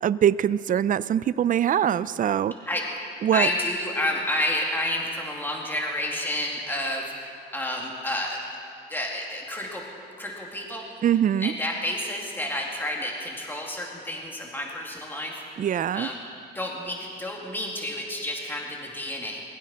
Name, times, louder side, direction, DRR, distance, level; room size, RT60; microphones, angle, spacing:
voice 1, 0.0-2.5 3.2-3.5 11.0-11.5 15.6-16.1, right 10 dB, 45° right, 17 dB, 0.4 m, -23 dB
voice 2, 3.3-8.4 8.9-9.8 10.2-10.9 11.1-15.4 15.9-16.2 16.5-19.4, left 1 dB, 10° left, -1 dB, 2.5 m, -30 dB
21.0 x 15.5 x 4.3 m, 2.5 s
cardioid pair, 90°, 20 cm